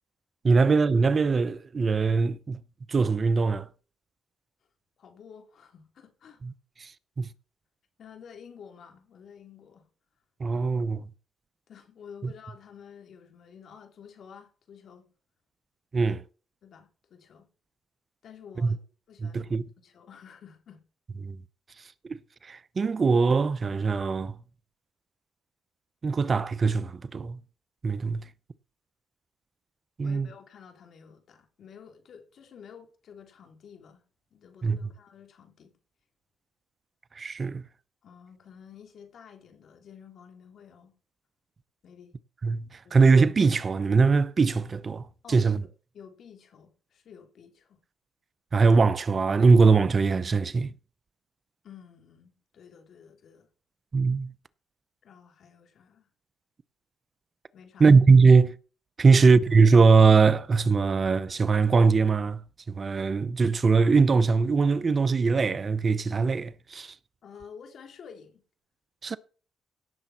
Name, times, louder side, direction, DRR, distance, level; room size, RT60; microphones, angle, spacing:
voice 1, 0.4-2.6 2.9-3.7 6.4-6.5 6.8-6.9 7.2-7.3 10.4-11.0 12.2-12.3 15.9-16.2 18.6-18.8 19.2-19.6 21.2-21.4 22.0-22.2 22.4-24.4 26.0-27.4 27.8-28.2 30.0-30.3 34.6-34.8 37.1-37.6 42.4-45.6 48.5-50.7 53.9-54.3 57.8-58.5 59.0-62.4 62.7-66.9 69.0-69.2, right 4 dB, 35° right, 0.7 m, -21 dB
voice 2, 5.0-6.4 8.0-9.9 10.5-10.7 11.7-15.1 16.6-17.5 18.2-18.8 19.1-19.5 19.8-20.8 30.0-34.0 34.3-35.7 38.0-40.9 41.8-42.2 42.8-43.0 45.2-45.7 45.9-47.8 51.6-53.5 55.0-56.1 57.5-58.0 59.0-59.3 67.2-68.4, left 7 dB, 60° left, 3.2 m, -50 dB
17.0 x 7.1 x 4.3 m
cardioid pair, 90°, 0 cm